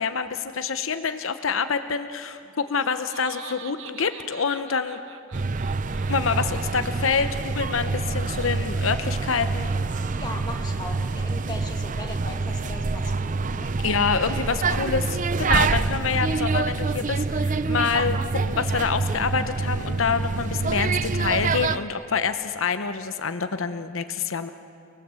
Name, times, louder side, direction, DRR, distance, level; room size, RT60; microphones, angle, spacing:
voice 1, 0.0-5.0 6.1-9.7 13.8-15.0 15.4-24.5, left 5 dB, 85° left, 9 dB, 0.8 m, -26 dB
Laughter, 2.4-7.7, right 7 dB, 75° right, 1.0 m, -45 dB
sound 1, 5.3-21.8, right 4 dB, 40° right, 0.6 m, -26 dB
voice 2, 10.1-13.7 14.6-14.8, left 2 dB, 20° left, 2 dB, 2.0 m, -38 dB
29.5 x 20.0 x 7.6 m, 2.5 s
head